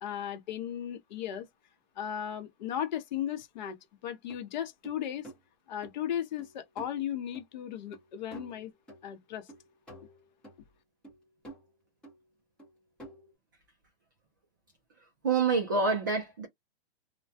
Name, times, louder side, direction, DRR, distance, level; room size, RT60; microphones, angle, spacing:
voice 1, 0.0-1.5 2.0-3.8 4.0-5.3 5.7-8.7 9.0-9.5, left 10 dB, 45° left, 0.8 m, -36 dB
sound 1, 4.3-4.4 4.8-5.4 5.8-5.9 6.4-6.9 7.3-7.4 7.9-8.1 8.3-9.1 9.5-10.6 11.0-11.7 12.0-12.2 12.6-13.3, right 2 dB, 5° left, 0.9 m, -49 dB
voice 2, 15.2-16.5, right 4 dB, 20° right, 0.3 m, -27 dB
2.2 x 2.1 x 2.7 m
hypercardioid pair, 160°, 33 cm